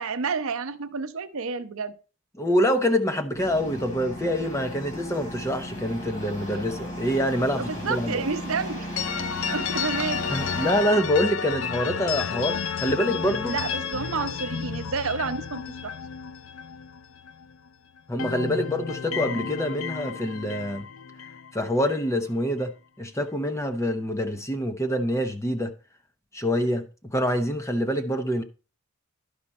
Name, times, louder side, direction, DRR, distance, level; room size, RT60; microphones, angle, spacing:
voice 1, 0.0-1.9 7.6-8.9 9.5-10.3 13.5-15.9, right 4 dB, 70° right, 0.7 m, -30 dB
voice 2, 2.4-8.2 10.3-13.6 18.1-20.9 21.5-22.7 23.0-25.7 26.3-28.4, equal, 15° left, 0.8 m, -26 dB
sound 1, 3.3-10.8, equal, 35° left, 3.8 m, -35 dB
sound 2, 9.0-17.7 18.0-22.1, left 7 dB, 60° left, 0.5 m, -32 dB
11.5 x 5.1 x 4.2 m
head